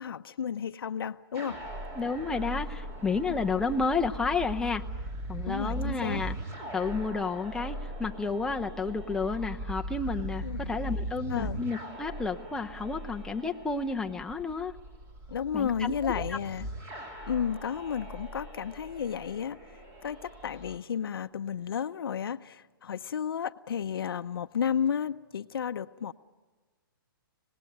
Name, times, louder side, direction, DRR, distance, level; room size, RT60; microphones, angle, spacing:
voice 1, 0.0-1.6 3.3-3.4 5.5-6.2 10.4-10.7 11.3-11.6 15.3-16.7 17.3-26.1, left 8 dB, 80° left, 9 dB, 0.7 m, -32 dB
sound 1, 1.3-20.8, right 1 dB, 25° right, 3.0 m, -39 dB
voice 2, 1.9-4.8 5.3-6.3 6.7-14.7 15.5-16.4, left 4 dB, 5° left, 3 dB, 0.8 m, -31 dB
26.0 x 19.0 x 9.4 m, 1.4 s
hypercardioid pair, 145°, 12 cm